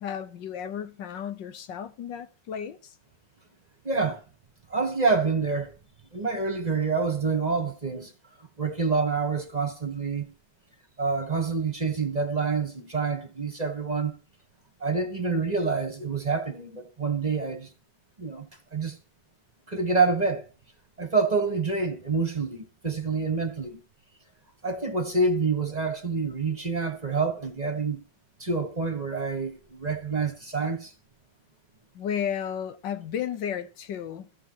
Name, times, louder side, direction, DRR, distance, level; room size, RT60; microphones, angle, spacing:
voice 1, 0.0-3.0 31.9-34.5, left 8 dB, 80° left, 1.7 m, -33 dB
voice 2, 3.8-4.2 4.7-5.7 6.1-8.1 8.4-10.3 11.0-14.1 14.8-17.7 18.2-18.5 18.7-19.0 19.7-20.4 21.0-23.8 24.6-28.0 28.4-30.9, right 4 dB, 25° right, 1.3 m, -27 dB
14.5 x 7.7 x 4.6 m
omnidirectional pair, 1.9 m